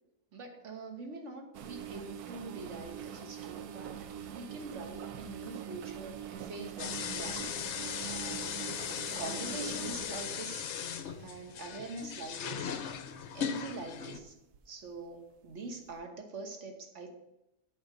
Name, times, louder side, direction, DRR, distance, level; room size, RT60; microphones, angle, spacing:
voice 1, 0.3-7.5 8.1-8.6 9.1-10.6 11.1-12.7 13.3-14.3 14.7-17.1, right 3 dB, 50° right, 3 dB, 1.5 m, -44 dB
sound 1, 1.5-11.7 12.4-12.7 13.1-13.3 14.1-14.6 14.9-15.0 15.9-16.0, right 9 dB, 80° right, 1.2 m, -44 dB
sound 2, 6.8-14.2, left 8 dB, 60° left, 0.8 m, -38 dB
8.2 x 4.8 x 6.5 m, 0.88 s
omnidirectional pair, 1.6 m